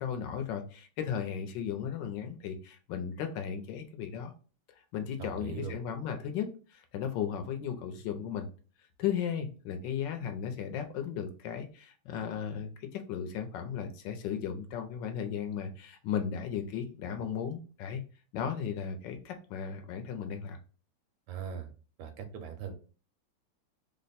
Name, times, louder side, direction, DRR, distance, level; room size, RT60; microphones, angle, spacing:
voice 1, 0.0-4.3 4.8-8.5 9.0-18.0 18.3-20.6, left 8 dB, 75° left, 6 dB, 1.2 m, -35 dB
voice 2, 5.2-5.7 21.3-21.7 22.0-22.7, right 7 dB, 80° right, 6 dB, 1.4 m, -40 dB
3.4 x 2.1 x 4.0 m, 0.37 s
omnidirectional pair, 2.1 m